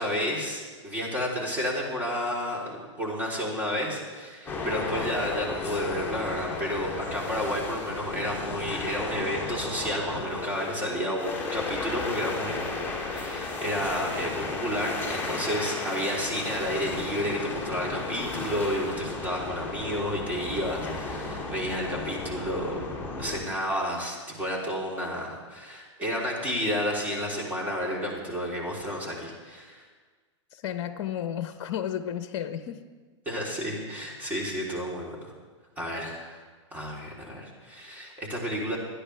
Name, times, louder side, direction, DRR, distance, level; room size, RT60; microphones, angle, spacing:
voice 1, 0.0-12.6 13.1-22.8 23.2-29.8 33.2-35.3 35.8-36.4 36.7-38.8, equal, 10° right, -4 dB, 3.4 m, -31 dB
sound 1, 4.5-23.4, left 3 dB, 15° left, 2.6 m, -34 dB
voice 2, 30.5-32.8, left 10 dB, 55° left, 10 dB, 0.8 m, -32 dB
26.0 x 10.0 x 3.4 m, 1.5 s
hypercardioid pair, 125°, 16 cm